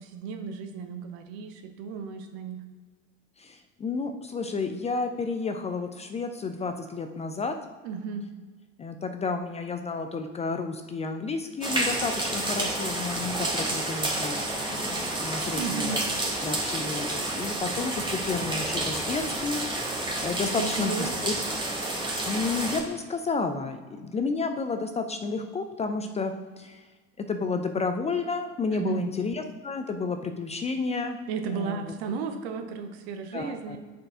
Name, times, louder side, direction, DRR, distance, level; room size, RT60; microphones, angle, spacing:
voice 1, 0.0-2.6 7.8-8.3 15.5-16.0 20.6-21.1 28.7-29.1 31.3-33.8, right 6 dB, 55° right, 6 dB, 1.0 m, -34 dB
voice 2, 3.4-7.5 8.8-14.4 14.7-15.9 16.4-21.3 22.3-26.8 27.2-31.2 31.5-31.8 33.3-33.8, left 4 dB, 20° left, 7 dB, 0.5 m, -31 dB
sound 1, 11.6-22.8, right 2 dB, 15° right, 1.6 m, -30 dB
8.5 x 4.3 x 3.6 m, 1.4 s
figure-of-eight pair, 65°, 37 cm